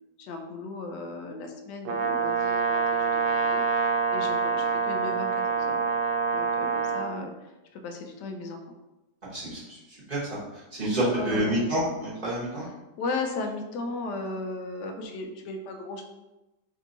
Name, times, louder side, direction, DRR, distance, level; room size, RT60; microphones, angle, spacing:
voice 1, 0.2-3.6 4.1-5.8 6.3-8.7 11.1-11.6 13.0-16.0, left 3 dB, 80° left, 4 dB, 1.2 m, -36 dB
Brass instrument, 1.8-7.1, right 5 dB, 85° right, 1.3 m, -26 dB
voice 2, 9.3-12.7, right 1 dB, 25° right, -9 dB, 1.2 m, -29 dB
3.4 x 2.7 x 3.9 m, 1.0 s
omnidirectional pair, 1.9 m